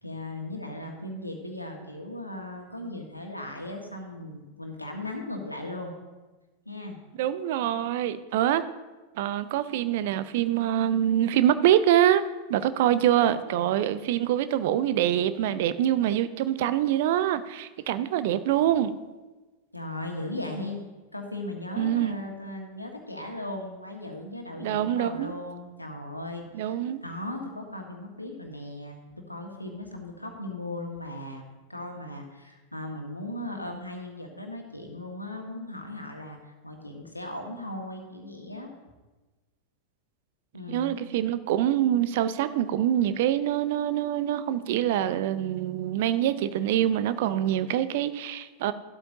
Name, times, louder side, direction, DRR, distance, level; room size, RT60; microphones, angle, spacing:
voice 1, 0.0-5.9 6.7-7.0 19.7-20.8 21.1-29.0 29.3-31.4 31.7-38.7 40.5-41.0, left 1 dB, 85° left, 2 dB, 1.8 m, -37 dB
voice 2, 7.2-8.6 9.2-12.2 12.5-18.9 21.8-22.2 24.6-25.3 26.5-27.0 40.7-48.7, right 11 dB, 50° right, 13 dB, 0.6 m, -25 dB
14.0 x 12.5 x 2.8 m, 1.2 s
figure-of-eight pair, 90°, 0 cm